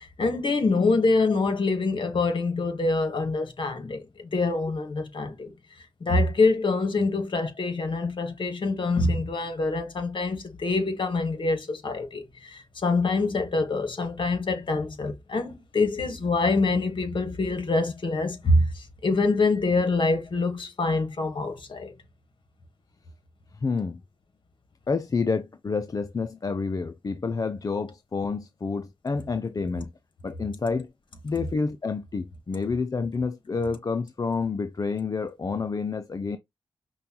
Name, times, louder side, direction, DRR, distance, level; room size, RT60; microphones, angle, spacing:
voice 1, 0.0-5.5 6.0-21.9, left 3 dB, 50° left, 1.2 m, -25 dB
voice 2, 23.6-24.0 24.9-29.9 30.2-30.9 31.2-36.4, left 4 dB, 35° left, 0.4 m, -29 dB
5.4 x 2.2 x 2.8 m
cardioid pair, 60°, 10 cm